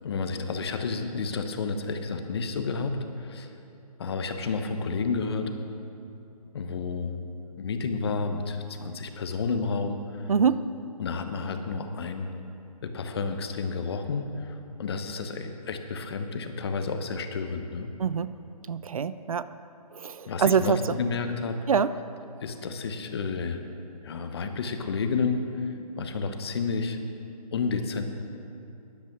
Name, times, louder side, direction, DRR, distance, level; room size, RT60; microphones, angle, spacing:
voice 1, 0.0-3.5 4.0-5.5 6.5-7.1 7.6-10.3 11.0-12.3 12.8-17.9 20.2-21.6 22.4-23.6 24.0-27.0 27.5-28.0, left 4 dB, 40° left, 7 dB, 1.0 m, -31 dB
voice 2, 10.3-10.6 18.0-18.3 18.7-19.5 19.9-21.0 21.7-21.9, right 6 dB, 60° right, 14 dB, 0.5 m, -25 dB
13.0 x 10.5 x 6.1 m, 2.8 s
hypercardioid pair, 160°, 20 cm